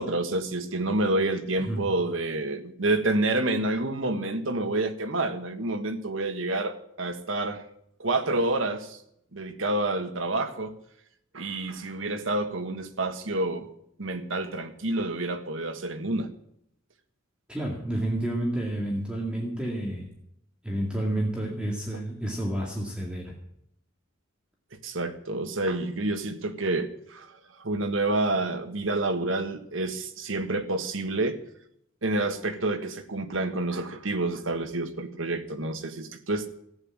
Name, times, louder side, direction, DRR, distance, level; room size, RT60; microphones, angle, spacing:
voice 1, 0.0-7.6 8.0-9.0 9.3-10.7 11.3-13.7 14.0-16.3 24.8-31.4 32.0-36.5, right 2 dB, 75° right, 8 dB, 1.5 m, -28 dB
voice 2, 1.6-1.9 17.5-20.1 20.6-23.3, right 1 dB, 5° right, -2 dB, 2.2 m, -30 dB
14.5 x 9.0 x 8.6 m, 0.73 s
head